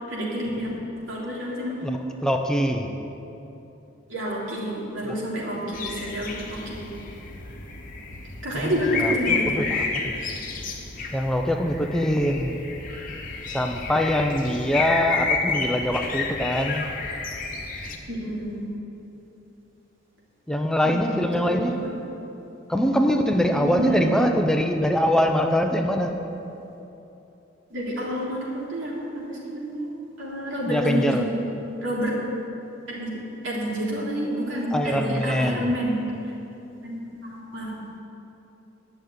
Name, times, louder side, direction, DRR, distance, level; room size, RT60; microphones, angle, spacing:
voice 1, 0.1-0.7 0.9-1.9 4.1-6.9 8.4-9.6 18.1-18.6 20.8-21.1 21.3-21.9 23.5-24.0 27.7-29.9 30.2-31.2 31.8-32.2 32.9-33.1 33.4-36.0 36.8-37.7, equal, 80° right, -5 dB, 3.3 m, -29 dB
voice 2, 1.8-2.9 5.1-5.2 5.5-5.7 8.5-10.2 11.1-12.6 13.5-16.9 20.5-21.8 22.7-26.1 30.7-31.3 34.7-35.7, equal, 5° left, 4 dB, 0.6 m, -23 dB
sound 1, 5.7-18.0, left 4 dB, 45° left, 1.2 m, -30 dB
11.0 x 6.7 x 9.3 m, 3.0 s
head